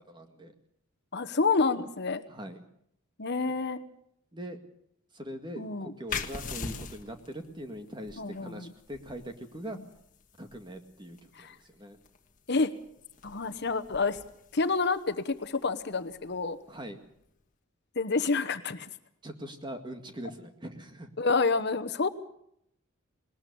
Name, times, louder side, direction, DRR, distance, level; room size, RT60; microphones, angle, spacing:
voice 1, 0.1-0.5 2.3-2.6 4.3-4.6 5.1-9.8 10.4-12.0 16.7-17.0 19.2-21.1, equal, 25° right, 6 dB, 2.0 m, -42 dB
voice 2, 1.1-2.2 3.2-3.8 5.6-5.9 8.2-8.7 11.3-11.5 12.5-12.7 13.2-14.2 14.5-16.6 18.0-18.9 21.2-22.1, left 4 dB, 55° left, 11 dB, 1.1 m, -28 dB
sound 1, 6.1-17.4, left 5 dB, 40° left, 1.6 m, -44 dB
20.5 x 20.0 x 6.9 m, 0.74 s
head